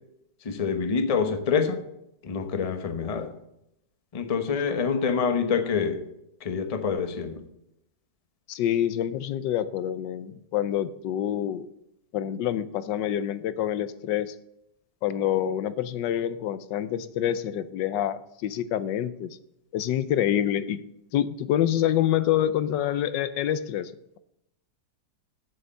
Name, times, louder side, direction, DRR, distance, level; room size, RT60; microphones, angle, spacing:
voice 1, 0.4-1.8 2.2-3.3 4.1-6.0 6.4-7.4, left 6 dB, 30° left, 7 dB, 0.8 m, -26 dB
voice 2, 8.5-11.7 12.1-14.3 15.0-19.4 19.7-20.8 21.1-23.9, left 11 dB, 80° left, 14 dB, 1.3 m, -27 dB
8.0 x 7.7 x 6.6 m, 0.81 s
omnidirectional pair, 1.9 m